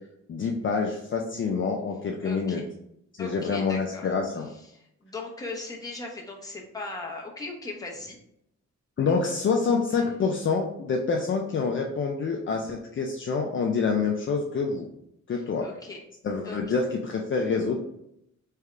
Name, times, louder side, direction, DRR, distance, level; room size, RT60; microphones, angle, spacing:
voice 1, 0.3-2.6 3.2-4.5 9.0-14.9 15.3-15.7 16.2-17.8, left 5 dB, 45° left, 1 dB, 0.5 m, -27 dB
voice 2, 2.2-2.7 3.2-8.2 9.9-10.1 15.3-16.0 16.4-16.8, left 3 dB, 10° left, -1 dB, 0.9 m, -39 dB
3.6 x 3.4 x 3.3 m, 0.77 s
wide cardioid pair, 130°, 29 cm